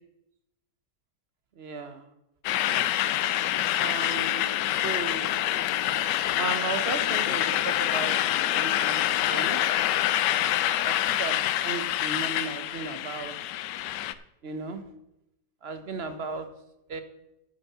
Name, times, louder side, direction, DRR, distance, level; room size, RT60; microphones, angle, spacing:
voice 1, 1.6-2.0 3.8-4.5 4.8-5.4 6.4-8.1 8.5-9.6 10.8-11.3 11.6-13.3 14.4-14.8 15.6-16.5 16.9-17.0, right 4 dB, 45° right, 9 dB, 1.1 m, -35 dB
sound 1, 2.4-14.1, left 13 dB, 85° left, 1.2 m, -26 dB
12.0 x 6.1 x 6.1 m, 0.85 s
omnidirectional pair, 1.8 m